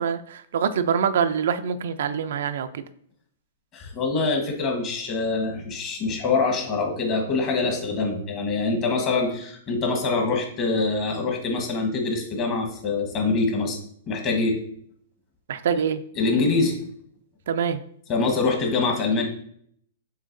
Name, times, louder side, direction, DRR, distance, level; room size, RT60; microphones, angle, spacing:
voice 1, 0.0-2.8 15.5-16.0 17.5-17.8, right 7 dB, 70° right, 10 dB, 0.4 m, -25 dB
voice 2, 3.7-13.8 14.1-14.6 16.1-16.8 18.1-19.2, left 3 dB, 30° left, 2 dB, 1.2 m, -24 dB
7.3 x 2.8 x 2.6 m, 0.65 s
hypercardioid pair, 145°, 0 cm